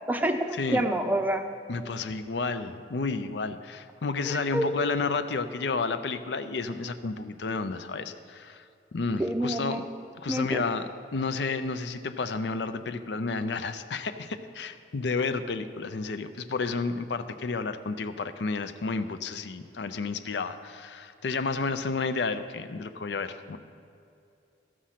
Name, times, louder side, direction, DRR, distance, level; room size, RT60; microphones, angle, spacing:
voice 1, 0.1-1.4 4.3-4.7 9.2-9.8 10.3-10.6, right 1 dB, 10° right, 6 dB, 0.5 m, -27 dB
voice 2, 1.7-8.6 8.9-9.8 10.2-23.6, left 4 dB, 75° left, 10 dB, 0.5 m, -31 dB
14.5 x 6.2 x 5.8 m, 2.6 s
head